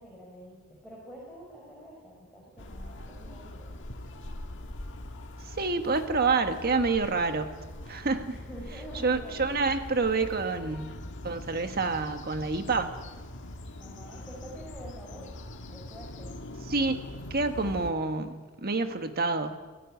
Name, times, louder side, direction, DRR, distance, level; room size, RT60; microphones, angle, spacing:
voice 1, 0.0-3.7 8.2-9.8 13.8-15.3 15.7-16.3, equal, ahead, -6 dB, 5.9 m, -47 dB
sound 1, 2.6-17.9, left 1 dB, 60° left, 1.9 m, -42 dB
voice 2, 5.5-8.2 9.0-10.9 11.2-13.0 16.7-19.6, right 3 dB, 45° right, 7 dB, 1.5 m, -28 dB
25.5 x 16.0 x 9.3 m, 1.3 s
head